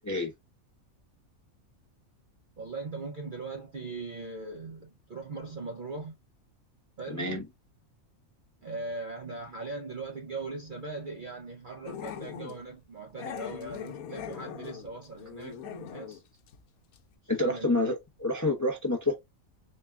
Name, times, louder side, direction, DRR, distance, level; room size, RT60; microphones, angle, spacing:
voice 1, 2.6-6.2 7.0-7.4 8.6-16.2 17.4-18.0, right 3 dB, 55° right, 0.6 m, -40 dB
voice 2, 7.1-7.4 17.3-19.1, left 2 dB, 20° left, 0.5 m, -28 dB
Growling, 11.9-12.6 13.2-16.2 16.5-16.6 16.9-17.0, left 9 dB, 90° left, 1.1 m, -41 dB
4.2 x 2.2 x 3.3 m
omnidirectional pair, 1.5 m